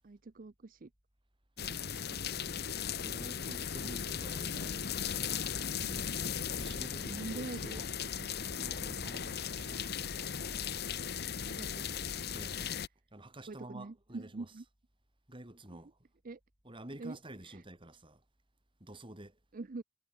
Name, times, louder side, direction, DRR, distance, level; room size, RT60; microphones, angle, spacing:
voice 1, 0.0-0.9 1.6-1.8 2.1-2.7 5.7-6.1 6.9-8.4 11.3-11.9 13.5-14.6 15.7-15.8 16.2-16.4 17.0-17.2 17.4-17.6 19.5-19.8, right 3 dB, 45° right, 0.6 m, -45 dB
sound 1, 1.6-12.9, left 7 dB, 55° left, 1.1 m, -37 dB
voice 2, 3.0-4.8 6.4-7.9 8.5-9.9 12.3-12.7 13.1-14.5 15.3-16.0 16.6-18.2 18.8-19.4, right 1 dB, 25° right, 3.6 m, -49 dB
head